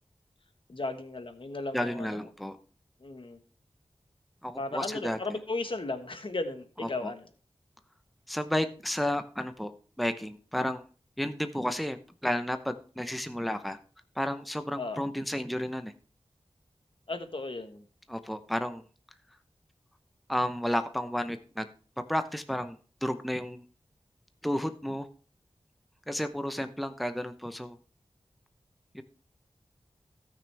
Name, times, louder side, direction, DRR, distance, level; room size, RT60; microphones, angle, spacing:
voice 1, 0.7-2.2 3.0-3.4 4.6-7.2 14.8-15.0 17.1-17.8, left 2 dB, 60° left, 7 dB, 1.4 m, -35 dB
voice 2, 1.7-2.6 4.4-5.2 7.0-7.1 8.3-9.7 10.0-10.8 11.2-12.0 12.2-13.8 14.2-15.9 18.1-18.8 20.3-21.7 22.1-23.6 24.4-25.0 26.1-27.8 28.9-29.0, left 1 dB, ahead, 8 dB, 0.8 m, -32 dB
17.0 x 6.2 x 3.4 m, 0.39 s
wide cardioid pair, 55°, 10 cm